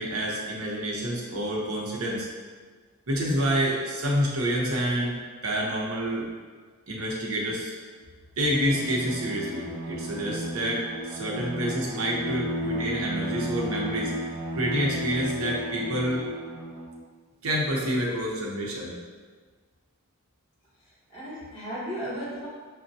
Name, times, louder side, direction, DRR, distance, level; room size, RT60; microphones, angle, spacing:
voice 1, 0.0-2.3 3.1-5.2 5.4-6.3 6.9-7.7 8.4-14.1 14.6-16.2 17.4-18.9, equal, 80° right, -3 dB, 0.8 m, -28 dB
Bowed string instrument, 8.5-17.0, equal, 15° right, 0.4 m, -33 dB
voice 2, 20.8-22.5, equal, 25° left, -8 dB, 1.4 m, -35 dB
5.9 x 2.2 x 2.6 m, 1.5 s
head